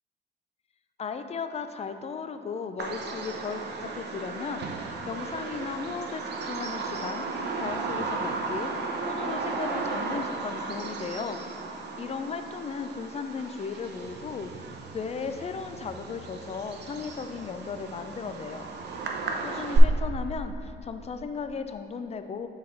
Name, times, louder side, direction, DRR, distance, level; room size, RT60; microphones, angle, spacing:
voice 1, 1.0-8.7 9.1-11.4 12.0-14.5 14.9-18.7 19.4-22.5, left 5 dB, 35° left, 9 dB, 0.4 m, -36 dB
Bird vocalization bird call bird song, 2.8-19.8, right 4 dB, 60° right, 0.7 m, -35 dB
6.3 x 4.0 x 4.3 m, 2.4 s
cardioid pair, 90°, 20 cm